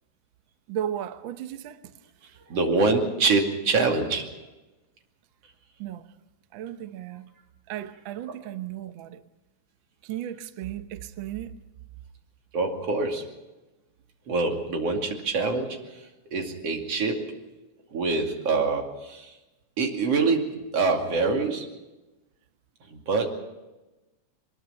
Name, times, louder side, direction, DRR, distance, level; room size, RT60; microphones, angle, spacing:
voice 1, 0.7-1.9 2.2-2.4 5.8-6.1 6.5-7.3 7.7-9.2 10.0-11.5, right 11 dB, 70° right, 1.2 m, -35 dB
voice 2, 2.5-4.3 12.5-13.3 14.3-17.4 17.9-19.4 19.8-21.7 22.9-23.3, right 3 dB, 55° right, 3.4 m, -25 dB
23.0 x 21.0 x 5.8 m
omnidirectional pair, 3.5 m